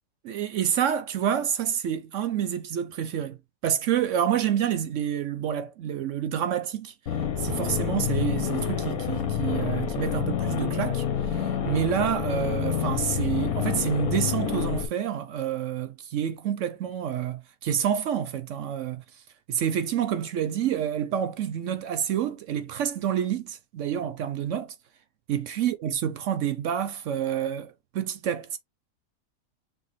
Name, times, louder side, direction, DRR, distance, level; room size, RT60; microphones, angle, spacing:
voice 1, 0.2-3.4 3.6-6.9 7.4-11.0 11.3-19.0 19.5-24.7 25.3-28.6, right 9 dB, 65° right, 0.9 m, -28 dB
sound 1, 7.1-14.9, left 8 dB, 80° left, 1.3 m, -28 dB
6.2 x 2.2 x 3.0 m
omnidirectional pair, 1.5 m